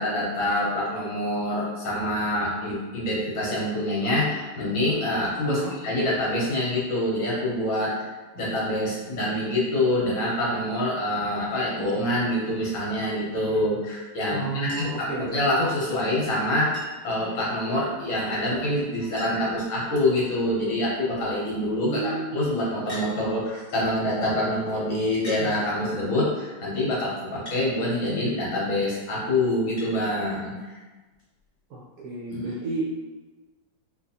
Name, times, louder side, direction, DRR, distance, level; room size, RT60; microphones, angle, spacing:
voice 1, 0.0-8.0 8.3-16.8 17.0-30.5 32.3-32.4, left 1 dB, 75° left, -6 dB, 1.8 m, -26 dB
voice 2, 14.3-15.4 21.8-22.7 31.7-33.0, right 2 dB, 75° right, -5 dB, 0.9 m, -32 dB
Chink clink, 14.7-15.1 16.7-17.2 18.5-18.6 18.8-18.9 19.2-19.6 20.4-20.7 22.9-23.1 24.2-24.3 25.2-25.5 27.5-27.6 29.8-29.9 31.4-31.5, right 1 dB, 20° left, 1.2 m, -40 dB
4.5 x 2.4 x 2.7 m, 1.2 s
omnidirectional pair, 2.1 m